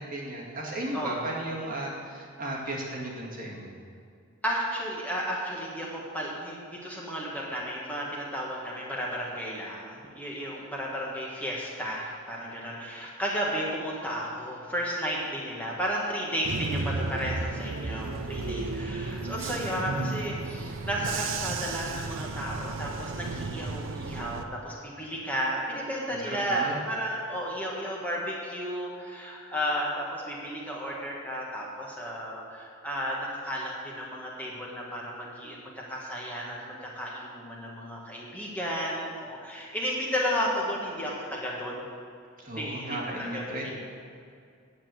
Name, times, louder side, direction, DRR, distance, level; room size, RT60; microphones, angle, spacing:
voice 1, 0.0-3.7 26.1-26.8 42.4-43.8, right 1 dB, 45° right, -4 dB, 2.2 m, -35 dB
voice 2, 0.9-1.2 4.4-41.9 42.6-43.8, equal, 10° left, -4 dB, 1.6 m, -33 dB
Bus / Engine, 16.4-24.4, right 3 dB, 75° right, 0.7 m, -33 dB
9.4 x 7.2 x 7.8 m, 2.3 s
head